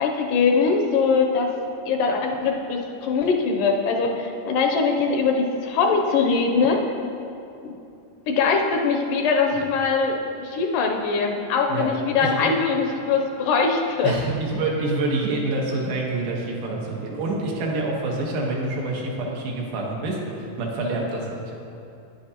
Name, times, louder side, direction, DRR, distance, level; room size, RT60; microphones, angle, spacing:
voice 1, 0.0-1.5 1.9-6.8 7.6-7.7 8.3-14.2, left 5 dB, 80° left, 2 dB, 2.1 m, -22 dB
voice 2, 12.2-12.5 14.0-21.5, right 2 dB, 80° right, -2 dB, 3.0 m, -27 dB
10.5 x 9.8 x 2.8 m, 2.7 s
omnidirectional pair, 4.0 m